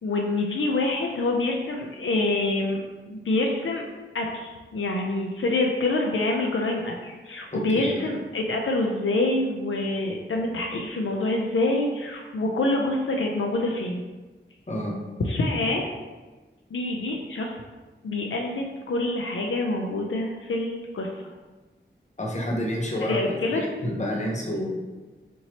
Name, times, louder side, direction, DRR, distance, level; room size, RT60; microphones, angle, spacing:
voice 1, 0.0-3.8 4.1-14.0 15.3-15.9 16.7-17.6 18.0-21.3 23.0-23.7, left 2 dB, 85° left, 1 dB, 0.5 m, -26 dB
voice 2, 7.5-8.1 14.7-14.9 22.2-23.2 23.5-24.7, equal, 35° left, -1 dB, 0.7 m, -29 dB
4.5 x 2.8 x 2.9 m, 1.3 s
wide cardioid pair, 75°, 20 cm